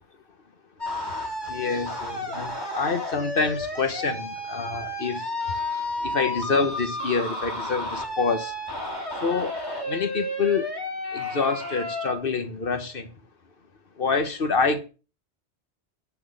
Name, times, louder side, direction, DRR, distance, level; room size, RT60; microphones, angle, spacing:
sound 1, 0.8-12.1, left 1 dB, 20° left, 2.5 m, -32 dB
voice 1, 1.5-5.3 6.0-8.5 9.1-9.6 9.9-10.7 11.1-13.1 14.0-14.8, left 4 dB, 55° left, 1.3 m, -27 dB
10.5 x 4.2 x 7.7 m
omnidirectional pair, 1.1 m